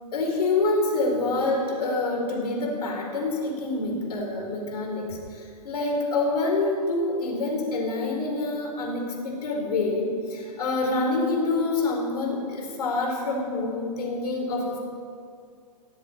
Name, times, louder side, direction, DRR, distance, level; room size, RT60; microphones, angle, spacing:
voice 1, 0.1-14.8, left 2 dB, 75° left, 0 dB, 4.7 m, -26 dB
17.0 x 7.9 x 8.7 m, 2.3 s
hypercardioid pair, 115°, 21 cm